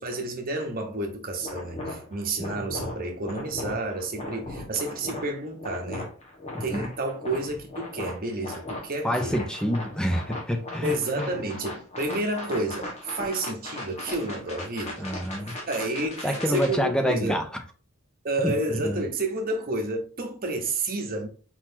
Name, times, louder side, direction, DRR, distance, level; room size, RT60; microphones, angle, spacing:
voice 1, 0.0-6.1 6.6-9.4 10.8-15.1 15.7-17.4 18.2-21.3, right 2 dB, 40° right, 1.1 m, -30 dB
sound 1, 1.4-16.8, left 1 dB, 30° left, 1.4 m, -38 dB
voice 2, 6.5-6.9 9.0-11.3 15.0-15.6 16.2-17.5 18.4-19.0, equal, 5° left, 0.7 m, -27 dB
4.4 x 4.1 x 2.8 m
head